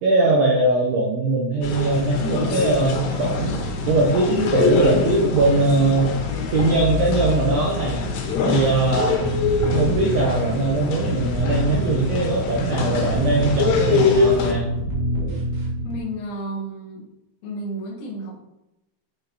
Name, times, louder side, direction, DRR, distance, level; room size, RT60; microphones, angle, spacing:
voice 1, 0.0-8.1 8.4-9.2 9.7-14.7 15.2-15.3, right 2 dB, 85° right, -2 dB, 2.3 m, -21 dB
sound 1, 1.6-14.5, left 4 dB, 90° left, 3.5 m, -24 dB
sound 2, 9.0-16.0, right 1 dB, 65° right, 2.9 m, -26 dB
voice 2, 15.8-17.0 17.4-18.4, right 1 dB, 65° left, -7 dB, 2.8 m, -32 dB
9.7 x 3.9 x 2.8 m, 0.93 s
omnidirectional pair, 5.6 m